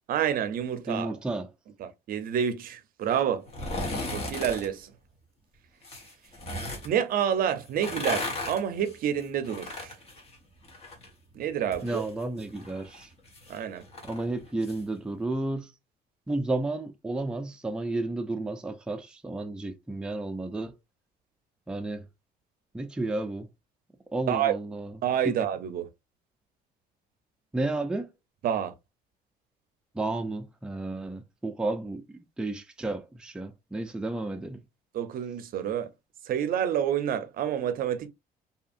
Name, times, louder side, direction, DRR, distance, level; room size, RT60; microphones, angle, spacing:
voice 1, 0.1-1.2 1.8-3.5 4.1-4.9 6.8-9.9 11.3-12.0 13.5-13.8 24.3-24.6 25.0-25.9 28.4-28.7 34.9-35.9 36.3-38.1, right 9 dB, 60° right, 0.5 m, -28 dB
voice 2, 0.9-1.5 11.8-13.1 14.0-15.7 16.3-20.8 21.7-22.1 22.7-23.5 24.1-25.0 25.2-25.4 27.5-28.1 29.9-34.6, right 2 dB, 5° right, 0.4 m, -32 dB
sound 1, 3.5-4.7 5.8-6.9 7.6-11.1 11.4-14.8 15.2-15.3, left 2 dB, 35° left, 1.2 m, -36 dB
2.7 x 2.5 x 2.5 m
cardioid pair, 110°, 17 cm